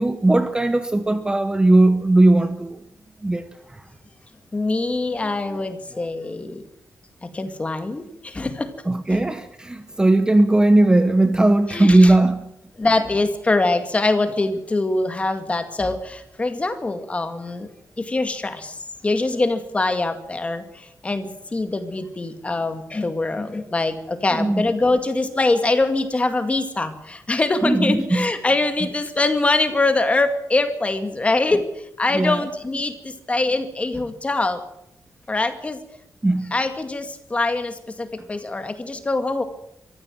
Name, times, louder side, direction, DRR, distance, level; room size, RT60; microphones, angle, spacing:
voice 1, 0.0-2.8 3.2-3.8 8.9-12.5 24.3-24.7 27.6-28.3 32.1-32.4 36.2-36.5, right 2 dB, 15° right, 0.9 m, -18 dB
voice 2, 4.5-6.6 7.2-8.7 9.1-9.2 11.7-12.1 12.8-17.7 18.0-18.8 19.0-34.6 35.3-35.8 36.5-39.4, left 2 dB, 20° left, 2.1 m, -23 dB
23.5 x 14.5 x 7.8 m
wide cardioid pair, 175°, 6 cm